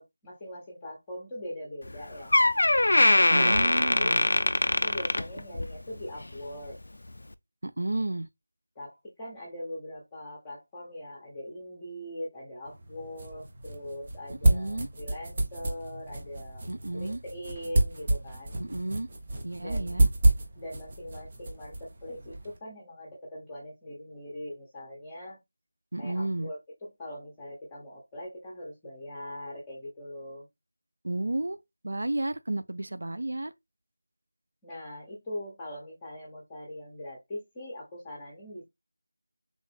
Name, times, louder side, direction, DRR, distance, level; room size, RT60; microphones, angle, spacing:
voice 1, 0.0-2.4 2.9-3.7 4.0-4.2 4.7-6.8 8.7-18.6 19.6-20.0 20.6-25.4 26.0-30.5 34.6-38.6, left 1 dB, 10° left, 0.9 m, -41 dB
Door, 1.8-2.0 2.3-5.8 6.2-6.4 7.2-7.3, left 2 dB, 60° left, 0.3 m, -22 dB
voice 2, 3.3-4.3 7.6-8.3 14.4-14.9 16.7-17.2 18.6-19.1 19.4-20.1 25.9-26.5 31.0-31.6 31.8-33.5, right 2 dB, 65° right, 0.4 m, -32 dB
sound 1, 12.7-22.6, right 1 dB, 30° right, 0.7 m, -29 dB
3.5 x 2.5 x 3.2 m
figure-of-eight pair, 170°, 0 cm